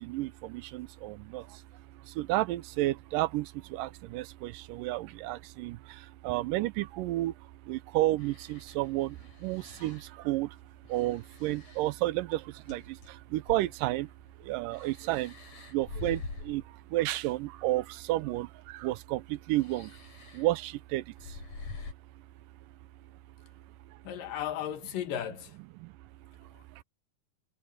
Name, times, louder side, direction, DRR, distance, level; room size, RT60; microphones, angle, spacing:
voice 1, 0.0-1.4 2.2-3.5 3.8-5.8 6.2-7.3 7.7-9.1 9.4-10.0 10.3-10.5 10.9-12.4 12.7-12.8 13.3-14.1 14.5-15.3 15.7-16.2 16.5-16.6 16.9-18.5 18.8-19.2 19.5-19.9 20.4-21.0, right 17 dB, 90° right, 2.3 m, -30 dB
sound 1, 8.2-10.2 10.8-13.2 13.4-16.7 17.9-18.0 19.5-20.5 21.2-21.9, left 4 dB, 55° left, 6.3 m, -46 dB
voice 2, 24.0-25.6 26.5-26.8, left 10 dB, 90° left, 3.2 m, -36 dB
omnidirectional pair, 3.8 m